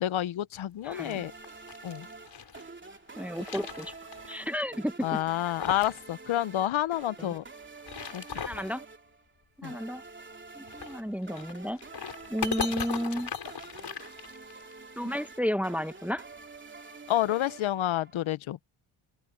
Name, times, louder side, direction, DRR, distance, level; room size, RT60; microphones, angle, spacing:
voice 1, 0.0-1.3 1.8-2.1 5.0-7.4 8.1-8.4 9.6-9.8 17.1-18.6, left 12 dB, 70° left, 0.9 m, -29 dB
sound 1, 0.8-2.6 3.1-4.3 4.6-4.7 5.2-6.0 6.3-6.4 7.6-8.7 10.6-14.7, left 6 dB, 55° left, 6.3 m, -38 dB
voice 2, 0.8-1.2 3.2-3.9 4.3-5.2 7.2-7.3 8.4-8.8 9.6-10.0 10.5-11.8 12.3-13.3 15.0-16.2, equal, 5° right, 1.0 m, -32 dB
sound 2, 0.9-18.3, right 4 dB, 20° right, 3.1 m, -47 dB
open air
wide cardioid pair, 120°, 50 cm